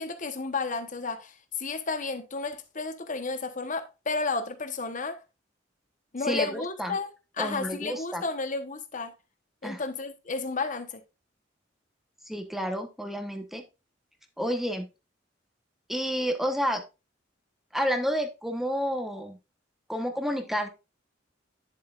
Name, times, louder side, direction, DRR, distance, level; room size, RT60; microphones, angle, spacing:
voice 1, 0.0-5.2 6.1-7.1 7.4-9.1 9.6-11.0, left 4 dB, 45° left, 1.1 m, -32 dB
voice 2, 6.2-7.0 7.4-8.2 9.6-9.8 12.3-13.6 14.4-14.9 15.9-16.8 17.7-19.4 19.9-20.7, equal, ahead, 1.1 m, -30 dB
10.5 x 7.5 x 2.5 m
head